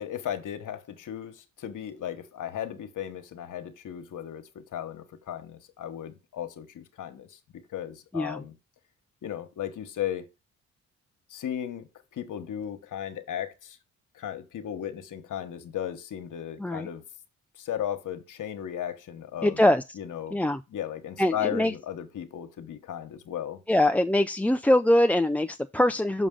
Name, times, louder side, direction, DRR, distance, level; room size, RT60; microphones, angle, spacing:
voice 1, 0.0-7.4 7.7-8.5 9.2-10.3 11.3-13.8 14.1-17.0 17.5-19.6 20.0-20.4 20.7-23.6, left 10 dB, 70° left, 1.3 m, -35 dB
voice 2, 19.4-20.0 20.3-20.6 21.2-21.7 23.7-26.3, left 1 dB, 5° left, 0.4 m, -23 dB
6.4 x 6.0 x 3.8 m
supercardioid pair, 60°, 32 cm